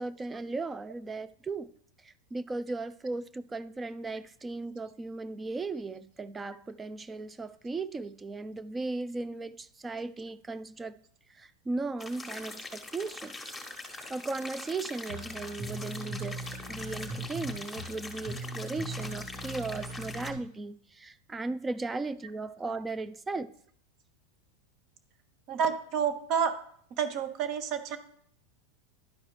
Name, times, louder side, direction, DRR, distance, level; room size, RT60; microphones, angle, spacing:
voice 1, 0.0-1.7 2.0-10.9 11.3-13.5 14.1-16.4 16.7-23.5, right 3 dB, 15° right, 0.4 m, -37 dB
sound 1, 12.0-20.3, left 3 dB, 10° left, 1.2 m, -43 dB
sound 2, 15.1-20.4, right 2 dB, 70° right, 1.8 m, -40 dB
voice 2, 25.5-26.5 27.0-28.0, right 7 dB, 50° right, 1.0 m, -29 dB
11.5 x 4.7 x 3.2 m
supercardioid pair, 120°, 0 cm